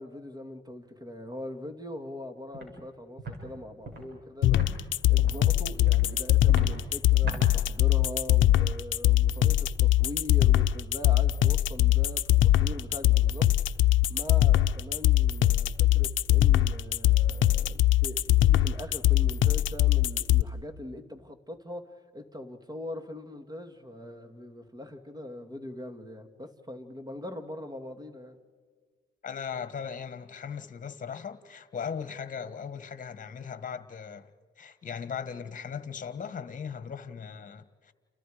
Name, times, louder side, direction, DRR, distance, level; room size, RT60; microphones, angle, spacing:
voice 1, 0.0-13.5 14.1-28.4, left 1 dB, 20° right, 2.4 m, -41 dB
Walk footsteps, 2.5-2.7 3.2-3.4 3.8-4.0 4.5-4.7 5.1-5.4 5.8-6.0 6.4-6.7 7.2-7.4, right 4 dB, 60° right, 6.8 m, -37 dB
sound 1, 4.4-20.4, left 14 dB, 75° left, 0.7 m, -22 dB
voice 2, 29.2-34.3 34.6-37.9, left 7 dB, 40° left, 1.6 m, -38 dB
30.0 x 29.5 x 5.1 m
cardioid pair, 90°, 20 cm